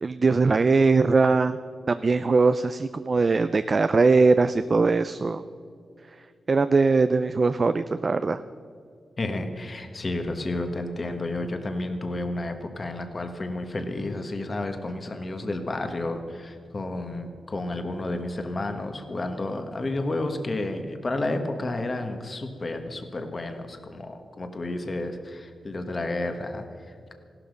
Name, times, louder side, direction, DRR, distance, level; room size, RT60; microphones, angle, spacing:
voice 1, 0.0-1.6 1.9-5.4 6.5-8.4, right 4 dB, 35° right, 11 dB, 0.4 m, -21 dB
voice 2, 9.2-27.1, left 2 dB, 35° left, 6 dB, 1.3 m, -31 dB
16.5 x 12.5 x 5.2 m, 2.3 s
wide cardioid pair, 110°, 0 cm